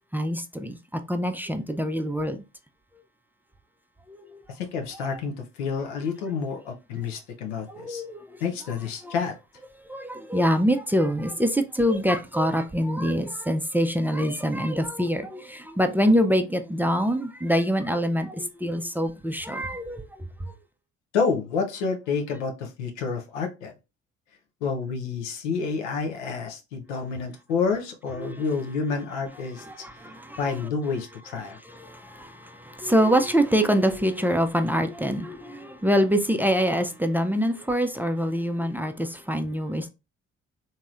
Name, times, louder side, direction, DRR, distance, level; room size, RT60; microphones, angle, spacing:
voice 1, 0.1-0.8 1.1-2.4 4.1-4.2 7.7-8.3 9.0-9.1 9.9-20.0 28.2-28.4 29.6-30.4 31.8-39.9, equal, 5° right, 0.4 m, -25 dB
voice 2, 4.5-8.0 8.4-9.4 21.1-23.7 24.6-29.6 30.4-31.6, left 5 dB, 90° left, 0.7 m, -29 dB
2.9 x 2.7 x 2.4 m
hypercardioid pair, 50°, 34 cm